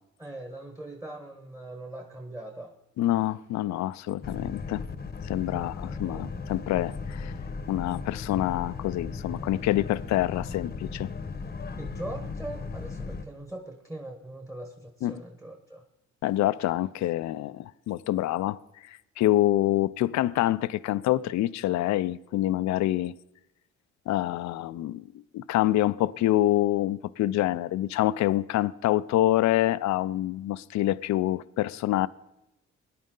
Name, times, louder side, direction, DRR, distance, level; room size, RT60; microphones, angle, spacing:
voice 1, 0.2-2.8 5.5-6.2 11.8-15.8, right 2 dB, 10° right, 1.2 m, -41 dB
voice 2, 3.0-4.8 5.2-7.3 7.7-11.1 15.0-15.2 16.2-23.1 24.1-25.1 25.3-32.1, left 14 dB, 65° left, 0.5 m, -26 dB
Boat Water vehicle, 4.2-13.2, left 4 dB, 30° left, 0.9 m, -36 dB
18.5 x 10.5 x 3.8 m
cardioid pair, 90°, 30 cm